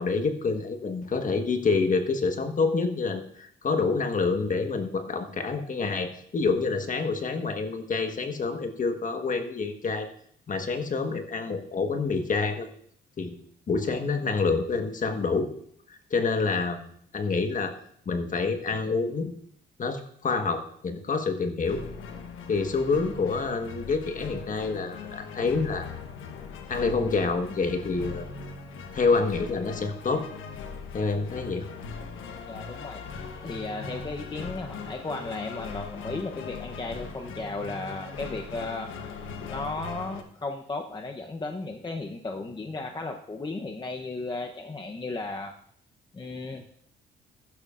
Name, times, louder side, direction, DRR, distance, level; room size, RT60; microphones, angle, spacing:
voice 1, 0.0-10.1 10.5-12.7 13.2-13.3 13.7-15.5 15.9-16.8 17.1-17.7 18.0-19.3 19.8-21.8 22.5-25.9 26.7-28.3 28.9-30.2 30.9-31.7, left 4 dB, 40° left, 6 dB, 1.4 m, -27 dB
sound 1, 21.6-40.2, left 5 dB, 85° left, 1.2 m, -40 dB
voice 2, 32.5-33.0 33.4-38.9 39.5-45.5 46.1-46.6, left 3 dB, 20° left, 3 dB, 0.9 m, -35 dB
15.5 x 11.5 x 2.5 m, 0.64 s
cardioid pair, 90°, 20 cm